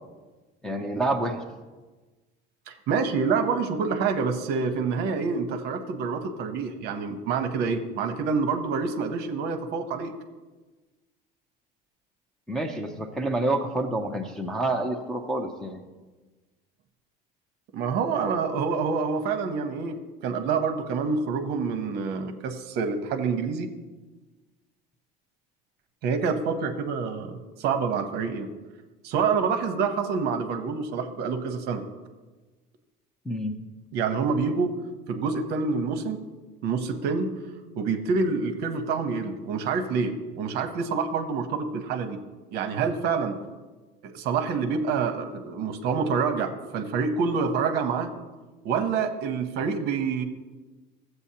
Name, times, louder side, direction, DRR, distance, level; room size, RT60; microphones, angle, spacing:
voice 1, 0.6-1.4 12.5-15.8 33.3-33.6, right 2 dB, 5° left, 0 dB, 0.5 m, -28 dB
voice 2, 2.7-10.1 17.7-23.7 26.0-28.5 29.0-31.8 33.9-36.2 36.6-37.4 37.8-42.2 42.5-43.4 44.0-48.1 48.6-50.2, right 5 dB, 55° right, 9 dB, 0.9 m, -27 dB
14.0 x 8.0 x 2.8 m, 1.2 s
cardioid pair, 165°, 20 cm